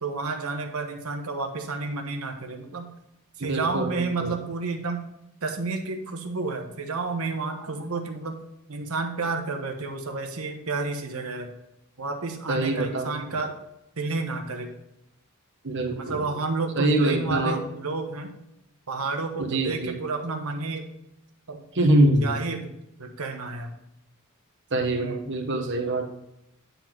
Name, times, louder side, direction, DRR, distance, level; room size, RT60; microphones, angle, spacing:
voice 1, 0.0-2.9 3.4-5.0 5.4-8.4 8.7-11.6 12.0-13.6 14.0-14.7 15.9-18.3 18.9-20.9 21.5-21.6 22.2-23.7 24.9-25.2, right 3 dB, 80° right, 4 dB, 1.1 m, -31 dB
voice 2, 3.4-4.3 12.5-13.4 15.6-16.3 16.8-17.6 19.4-20.0 21.7-22.4 24.7-26.1, right 1 dB, 55° right, 4 dB, 1.2 m, -24 dB
9.8 x 4.0 x 4.5 m, 0.85 s
head